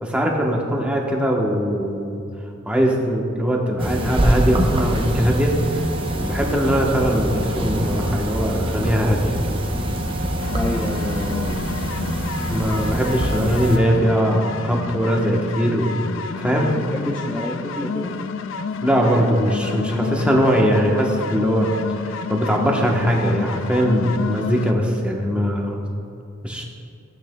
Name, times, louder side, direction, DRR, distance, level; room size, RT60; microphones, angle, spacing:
voice 1, 0.0-2.2 2.6-5.5 6.1-9.6 12.5-16.0 16.4-16.7 18.8-21.7 22.0-25.8 26.4-26.6, equal, 5° right, -1 dB, 1.0 m, -21 dB
sound 1, 3.8-13.8, right 1 dB, 25° right, 0.8 m, -24 dB
sound 2, 10.4-24.7, left 5 dB, 65° left, 0.4 m, -29 dB
voice 2, 10.5-11.7 16.5-18.2, left 1 dB, 10° left, -4 dB, 0.6 m, -28 dB
15.0 x 8.5 x 2.3 m, 2.6 s
head